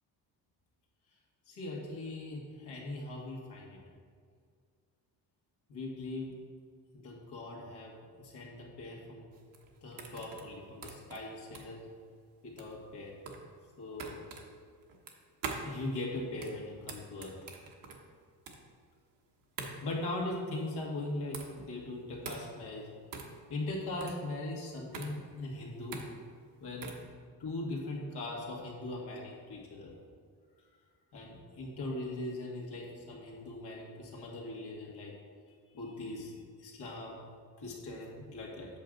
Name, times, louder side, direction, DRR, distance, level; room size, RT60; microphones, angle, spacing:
voice 1, 1.5-3.8 5.7-6.3 6.9-9.3 9.8-11.8 12.4-13.1 13.8-14.2 15.6-17.3 19.8-22.9 23.5-26.0 26.6-26.9 27.4-29.9 31.1-35.1 35.7-37.2 37.6-38.7, left 2 dB, 70° left, -2 dB, 1.9 m, -40 dB
sound 1, 9.3-27.1, right 4 dB, 50° right, 1.1 m, -45 dB
8.3 x 6.2 x 3.9 m, 2.1 s
cardioid pair, 135°, 41 cm